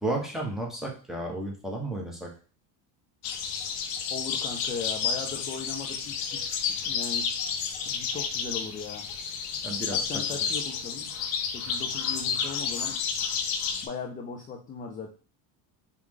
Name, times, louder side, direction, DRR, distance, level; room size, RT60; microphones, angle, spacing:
voice 1, 0.0-2.3 9.6-10.0 10.5-10.6, right 2 dB, ahead, -2 dB, 1.0 m, -32 dB
sound 1, 3.2-13.9, left 6 dB, 70° left, 0.8 m, -31 dB
voice 2, 4.1-6.6 6.8-7.3 7.9-9.1 9.9-11.1 11.5-13.0 13.8-15.1, left 5 dB, 20° left, 2 dB, 0.4 m, -38 dB
4.7 x 2.5 x 3.7 m, 0.38 s
cardioid pair, 135°, 43 cm